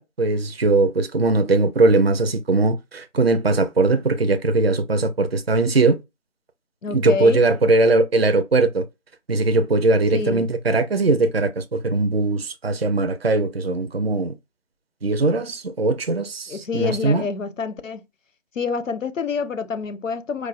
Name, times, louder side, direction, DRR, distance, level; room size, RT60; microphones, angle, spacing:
voice 1, 0.0-6.0 6.9-8.8 9.3-14.3 15.0-17.3, right 3 dB, 55° right, 0.5 m, -20 dB
voice 2, 6.8-7.4 10.1-10.5 16.5-18.1 18.6-20.5, left 5 dB, 85° left, 0.6 m, -27 dB
4.6 x 2.0 x 2.3 m
figure-of-eight pair, 175°, 37 cm